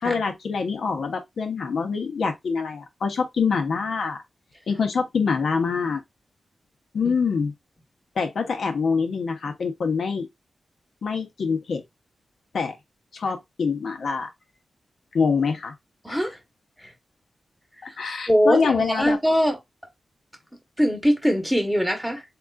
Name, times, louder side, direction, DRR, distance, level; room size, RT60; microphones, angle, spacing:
voice 1, 0.0-4.2 4.7-6.0 6.9-7.5 8.2-10.3 11.0-11.8 12.5-12.8 13.1-14.3 15.1-15.7 16.1-16.2 17.8-19.2, left 5 dB, 75° left, 0.8 m, -25 dB
voice 2, 16.0-16.4 16.8-16.9 17.9-18.0 18.3-19.6 20.8-22.2, equal, ahead, 1.0 m, -22 dB
3.7 x 2.3 x 2.3 m
wide cardioid pair, 105°, 0 cm